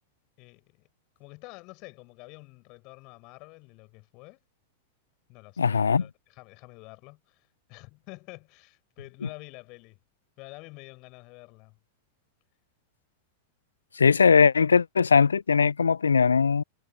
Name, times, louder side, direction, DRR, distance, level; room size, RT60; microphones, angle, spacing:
voice 1, 0.4-0.9 1.2-4.4 5.3-10.0 10.4-11.8, left 26 dB, 40° left, 6.3 m, -48 dB
voice 2, 5.6-6.0 14.0-16.6, left 5 dB, 75° left, 0.5 m, -20 dB
figure-of-eight pair, 90°, 0 cm